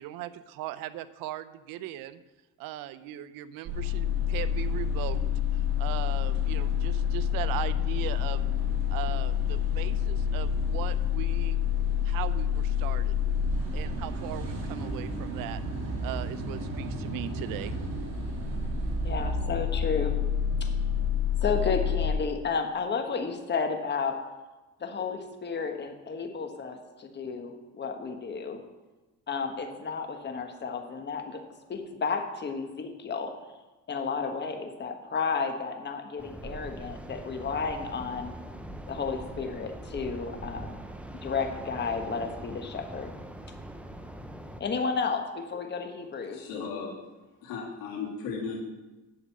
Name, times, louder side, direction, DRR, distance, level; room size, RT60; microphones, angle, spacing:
voice 1, 0.0-2.2 2.6-5.2 5.8-8.5 8.9-11.6 12.0-13.2 13.7-15.6 16.0-17.8, right 13 dB, 85° right, 14 dB, 0.7 m, -38 dB
sound 1, 3.7-22.1, left 7 dB, 50° right, 2.9 m, -28 dB
voice 2, 19.0-20.1 20.6-20.7 21.4-24.2 24.8-28.6 29.3-31.4 31.7-33.3 33.9-38.3 38.9-40.8 41.2-43.1 44.6-46.4, left 5 dB, 30° left, 5 dB, 1.3 m, -32 dB
sound 2, 36.2-44.6, right 1 dB, 5° right, 0.8 m, -42 dB
voice 3, 46.3-46.9 47.4-48.6, left 5 dB, 85° left, -2 dB, 3.0 m, -35 dB
8.7 x 6.6 x 7.4 m, 1.1 s
cardioid pair, 105°, 34 cm